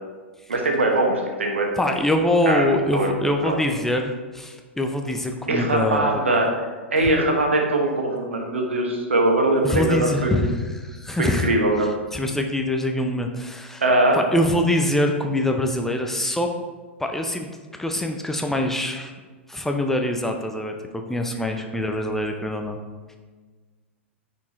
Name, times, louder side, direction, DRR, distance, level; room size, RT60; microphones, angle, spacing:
voice 1, 0.5-1.7 2.5-2.6 2.9-3.1 3.4-3.6 5.5-6.5 6.9-10.5 11.2-11.9 13.8-14.2 21.5-21.6, right 2 dB, 80° right, 1 dB, 1.2 m, -21 dB
voice 2, 1.8-6.2 9.6-11.5 12.1-13.8 14.1-16.5 17.0-17.5 17.8-19.1 19.5-22.8, left 1 dB, 5° left, 4 dB, 0.6 m, -24 dB
9.5 x 4.4 x 3.1 m, 1.4 s
figure-of-eight pair, 95°, 7 cm